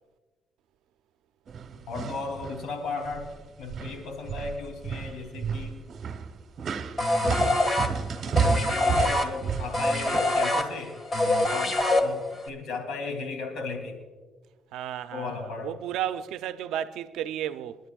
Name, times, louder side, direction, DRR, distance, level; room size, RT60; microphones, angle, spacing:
sound 1, 1.5-2.6 3.0-3.4 3.7-10.2, right 6 dB, 60° right, 1.0 m, -31 dB
voice 1, 1.9-3.3 3.6-5.8 8.3-10.9 11.5-11.7 12.0-12.2 12.5-14.0 15.1-15.7, left 4 dB, 80° left, 3.1 m, -35 dB
sound 2, 7.0-12.5, left 2 dB, 30° left, 1.8 m, -25 dB
voice 2, 14.7-17.8, right 11 dB, 90° right, 0.6 m, -33 dB
28.5 x 10.5 x 2.4 m
cardioid pair, 90°, 0 cm